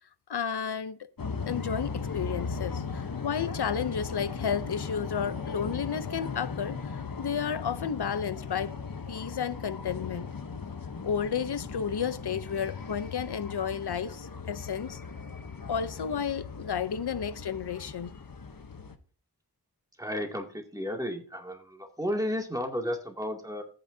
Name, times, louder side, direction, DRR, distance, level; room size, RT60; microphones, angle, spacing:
voice 1, 0.3-1.0 1.5-6.9 7.2-8.7 9.1-10.3 11.0-15.0 15.7-18.2, left 7 dB, 75° left, 0.7 m, -32 dB
sound 1, 1.2-19.0, left 5 dB, 60° left, 1.0 m, -38 dB
voice 2, 20.0-23.6, equal, 10° right, 2.4 m, -33 dB
14.0 x 9.0 x 2.7 m
wide cardioid pair, 45°, 39 cm